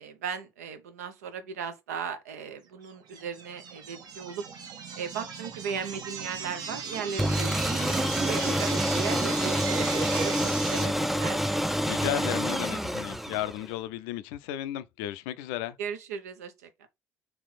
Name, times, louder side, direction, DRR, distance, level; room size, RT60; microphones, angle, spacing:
voice 1, 0.0-4.4 4.9-11.6 15.8-16.9, right 7 dB, 75° right, 0.6 m, -37 dB
sound 1, 3.1-10.9, right 5 dB, 50° right, 0.9 m, -35 dB
sound 2, 7.2-13.7, equal, ahead, 0.4 m, -28 dB
voice 2, 11.9-15.8, left 13 dB, 65° left, 0.4 m, -34 dB
3.3 x 3.0 x 4.0 m
figure-of-eight pair, 50°, 8 cm